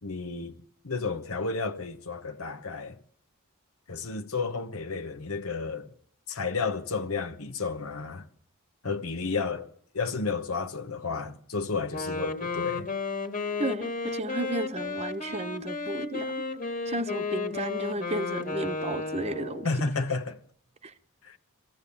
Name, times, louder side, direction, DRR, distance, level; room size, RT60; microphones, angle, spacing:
voice 1, 0.0-3.0 3.9-5.9 6.3-8.3 8.8-12.9 19.6-20.4 21.2-21.4, left 4 dB, 75° left, 1.2 m, -32 dB
Wind instrument woodwind instrument, 11.9-19.8, left 3 dB, 35° left, 2.0 m, -33 dB
voice 2, 13.6-16.3 16.9-19.7 20.8-20.9, right 2 dB, 30° right, 1.0 m, -33 dB
23.0 x 15.0 x 8.5 m
head